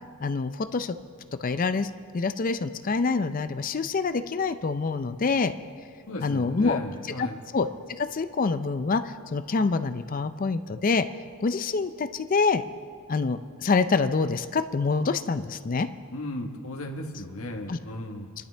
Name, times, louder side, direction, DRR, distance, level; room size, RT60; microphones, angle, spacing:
voice 1, 0.2-1.0 1.4-5.5 6.2-6.8 7.2-7.3 7.5-7.7 8.0-11.1 11.4-12.6 13.1-15.9 17.7-17.8, left 4 dB, 40° left, 10 dB, 0.4 m, -26 dB
voice 2, 6.1-7.4 16.1-18.3, left 1 dB, 75° left, 2 dB, 1.5 m, -35 dB
28.5 x 11.5 x 3.4 m, 2.2 s
head